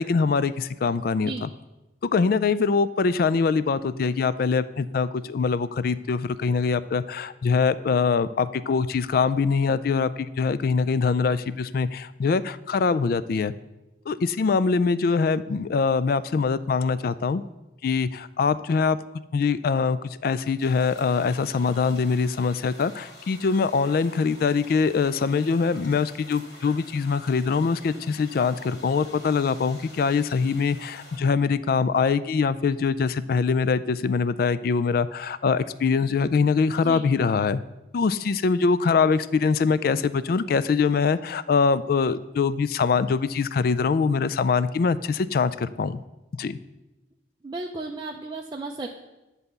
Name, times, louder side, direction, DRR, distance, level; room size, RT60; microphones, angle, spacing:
voice 1, 0.0-1.5 2.0-13.5 14.1-17.4 17.8-19.0 19.3-37.6 37.9-46.0 46.4-46.6, left 5 dB, 55° left, 15 dB, 0.3 m, -23 dB
sound 1, 20.6-31.2, left 1 dB, 75° left, 2.6 m, -48 dB
voice 2, 47.4-48.9, right 2 dB, 25° right, 0 dB, 0.5 m, -34 dB
10.0 x 4.1 x 6.7 m, 1.0 s
head